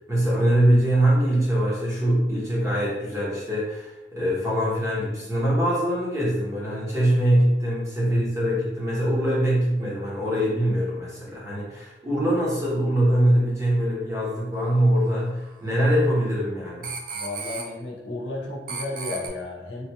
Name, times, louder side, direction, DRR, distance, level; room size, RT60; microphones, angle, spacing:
voice 1, 0.1-16.9, right 1 dB, 15° right, -7 dB, 1.0 m, -23 dB
sound 1, 15.4-15.6 16.8-17.6 18.7-19.3, right 5 dB, 45° right, 0.4 m, -33 dB
voice 2, 17.1-19.9, left 2 dB, 75° left, -2 dB, 0.7 m, -33 dB
3.2 x 2.4 x 2.9 m, 0.98 s
head